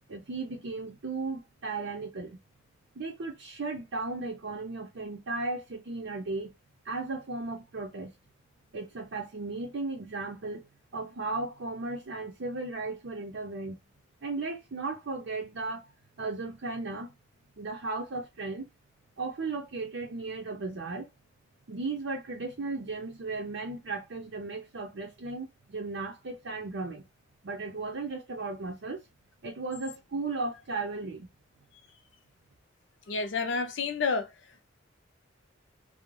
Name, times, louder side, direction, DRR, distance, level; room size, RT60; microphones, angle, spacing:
voice 1, 0.1-2.4 3.0-6.5 6.8-8.1 8.7-10.6 10.9-13.8 14.2-15.9 16.2-17.1 17.6-18.6 19.2-21.1 21.7-27.0 27.4-29.1 29.4-31.3, right 3 dB, 65° right, 0.6 m, -35 dB
voice 2, 33.1-34.3, left 4 dB, 65° left, 0.6 m, -29 dB
2.5 x 2.1 x 3.0 m
head